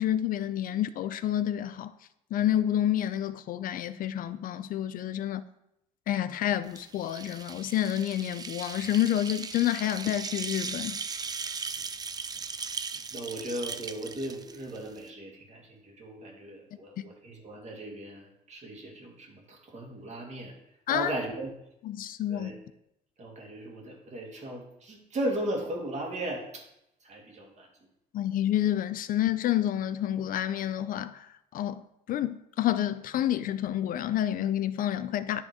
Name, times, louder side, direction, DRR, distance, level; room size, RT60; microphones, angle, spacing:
voice 1, 0.0-1.9 2.3-5.4 6.1-11.0 20.9-21.1 21.8-22.5 28.1-35.4, left 11 dB, 55° left, 0.4 m, -29 dB
sound 1, 6.7-15.1, right 5 dB, 25° right, 0.4 m, -38 dB
voice 2, 13.1-20.5 20.9-21.5 22.3-22.6 23.2-26.7 27.0-27.7, right 1 dB, 45° right, 2.1 m, -37 dB
10.5 x 3.6 x 4.8 m
cardioid pair, 110°, 17 cm